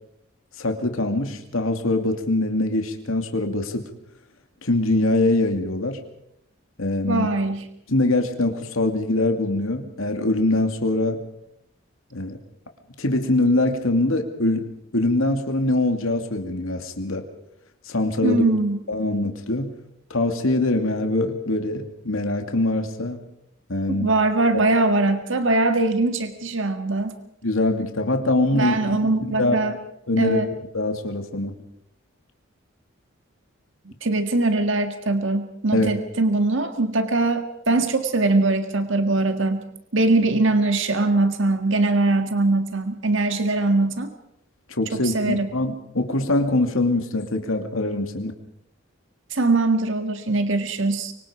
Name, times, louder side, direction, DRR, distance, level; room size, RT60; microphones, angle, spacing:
voice 1, 0.6-3.8 4.6-6.0 6.8-7.3 7.9-11.2 12.1-12.4 13.0-14.6 14.9-17.2 17.9-18.4 18.9-19.7 20.1-23.2 23.7-24.1 27.4-29.6 30.1-31.5 35.7-35.9 44.7-48.3, left 2 dB, 80° left, 5 dB, 2.5 m, -23 dB
voice 2, 7.1-7.7 18.2-18.8 23.9-27.1 28.5-29.8 30.2-30.5 34.0-39.7 39.9-44.1 44.9-45.5 49.3-51.1, right 2 dB, 65° right, 7 dB, 1.8 m, -22 dB
25.0 x 24.0 x 5.1 m, 0.76 s
head